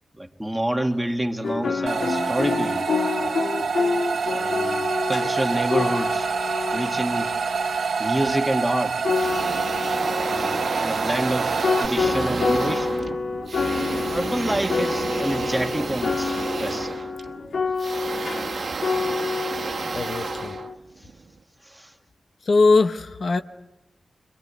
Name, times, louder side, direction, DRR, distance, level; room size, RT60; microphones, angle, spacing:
voice 1, 0.2-2.9 4.3-6.3 6.7-7.3 8.0-9.0 10.2-13.0 14.0-17.0 21.0-21.1 21.6-21.9, right 1 dB, 5° right, 4 dB, 1.7 m, -28 dB
sound 1, 1.4-20.7, left 4 dB, 85° left, 2.2 m, -28 dB
sound 2, 1.9-11.9, right 5 dB, 85° right, 1.1 m, -26 dB
sound 3, 9.1-21.3, right 4 dB, 55° right, 1.3 m, -31 dB
voice 2, 19.9-20.6 22.4-23.4, left 3 dB, 50° left, 7 dB, 0.9 m, -20 dB
26.5 x 23.5 x 8.3 m, 0.96 s
wide cardioid pair, 170°, 0 cm